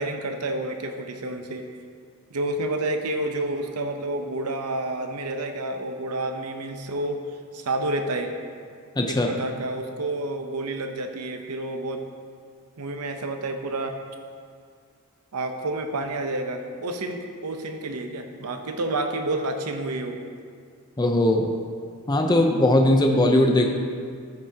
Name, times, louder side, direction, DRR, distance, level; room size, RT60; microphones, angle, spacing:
voice 1, 0.0-1.7 2.3-7.2 7.5-8.4 9.1-12.0 12.8-14.0 15.3-20.3, right 2 dB, 90° right, 5 dB, 0.8 m, -29 dB
voice 2, 9.0-9.3 21.0-21.5 22.1-23.7, left 1 dB, 20° left, 3 dB, 0.5 m, -19 dB
13.5 x 6.0 x 2.8 m, 2.1 s
head